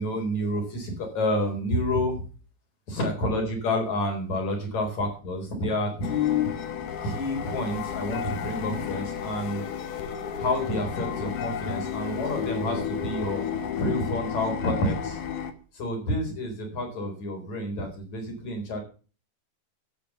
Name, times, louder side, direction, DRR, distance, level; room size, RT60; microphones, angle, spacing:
voice 1, 0.0-2.2 2.9-6.5 7.0-9.7 10.4-13.4 13.8-15.2 15.7-18.8, left 1 dB, 60° left, 3 dB, 5.4 m, -29 dB
sound 1, 6.0-15.5, left 8 dB, 80° left, 3.0 m, -32 dB
12.0 x 8.4 x 6.9 m, 0.37 s
omnidirectional pair, 3.7 m